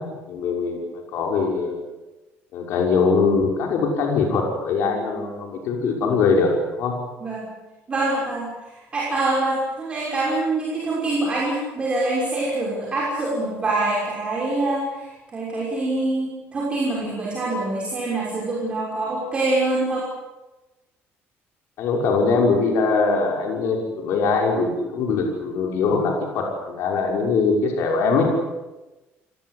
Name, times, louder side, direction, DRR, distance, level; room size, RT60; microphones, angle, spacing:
voice 1, 0.0-1.8 2.5-6.9 21.8-28.3, left 4 dB, 65° left, 1 dB, 6.0 m, -22 dB
voice 2, 7.9-20.1, right 2 dB, 25° right, -5 dB, 6.0 m, -25 dB
29.0 x 18.5 x 8.4 m, 1.1 s
cardioid pair, 175°, 5 cm